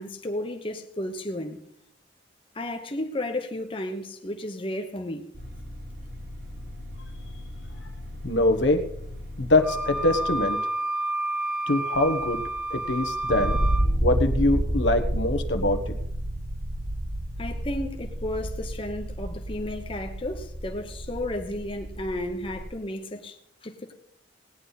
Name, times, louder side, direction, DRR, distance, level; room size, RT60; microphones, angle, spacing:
voice 1, 0.0-1.7 2.5-5.3 17.4-23.9, left 1 dB, 30° left, 0.9 m, -33 dB
sound 1, 5.3-10.4, left 1 dB, 80° right, 5.3 m, -39 dB
voice 2, 8.2-8.9 9.4-10.6 11.7-12.4 12.7-13.6 14.0-15.9, left 2 dB, 75° left, 1.2 m, -23 dB
Wind instrument woodwind instrument, 9.6-13.9, right 1 dB, 5° right, 0.5 m, -30 dB
sound 2, 11.9-22.7, right 1 dB, 45° right, 2.1 m, -30 dB
18.0 x 9.8 x 4.1 m
head